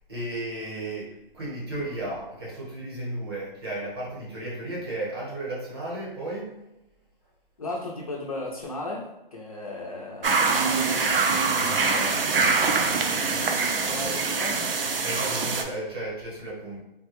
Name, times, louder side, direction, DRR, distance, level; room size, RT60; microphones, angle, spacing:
voice 1, 0.1-6.5 13.8-14.2 15.0-16.8, right 1 dB, 25° right, -5 dB, 0.9 m, -34 dB
voice 2, 7.6-12.2 13.9-14.6, equal, 40° left, -2 dB, 0.4 m, -34 dB
sound 1, 10.2-15.6, right 4 dB, 70° right, 0.5 m, -24 dB
3.2 x 2.2 x 2.9 m, 0.94 s
hypercardioid pair, 170°, 29 cm